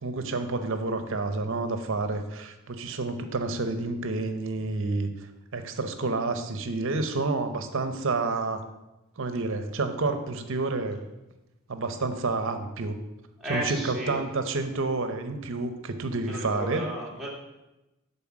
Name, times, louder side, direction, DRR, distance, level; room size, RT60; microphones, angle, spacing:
voice 1, 0.0-5.1 5.5-8.6 9.2-11.0 11.7-13.0 13.5-16.9, right 3 dB, 60° right, 8 dB, 0.7 m, -29 dB
voice 2, 13.4-14.2 16.2-17.3, equal, ahead, -6 dB, 1.7 m, -33 dB
7.7 x 3.9 x 6.0 m, 0.99 s
head